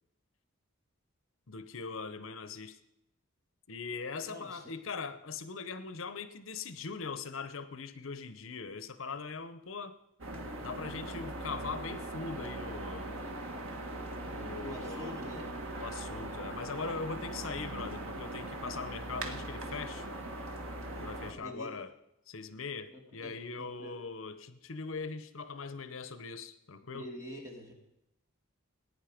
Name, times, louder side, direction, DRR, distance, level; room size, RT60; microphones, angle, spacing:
voice 1, 1.5-2.8 3.7-10.0 10.6-13.1 14.4-15.2 15.8-20.1 21.0-21.9 22.3-27.1, left 4 dB, 75° left, 12 dB, 0.9 m, -41 dB
voice 2, 4.2-4.7 14.6-15.5 20.9-21.1 21.4-21.7 22.9-24.0 26.9-27.7, equal, 15° right, 0 dB, 2.5 m, -46 dB
sound 1, 10.2-21.3, right 1 dB, 85° right, 1.9 m, -40 dB
20.0 x 9.7 x 5.1 m, 0.87 s
head